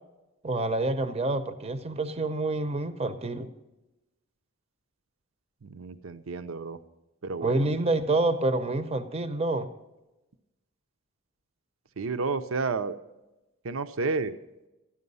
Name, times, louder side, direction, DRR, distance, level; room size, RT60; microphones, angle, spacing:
voice 1, 0.4-3.5 7.4-9.7, right 2 dB, 30° right, 10 dB, 0.7 m, -27 dB
voice 2, 5.6-6.8 7.2-7.7 12.0-12.9 13.6-14.4, right 4 dB, 70° right, 10 dB, 0.6 m, -31 dB
14.0 x 10.0 x 5.5 m, 1.0 s
head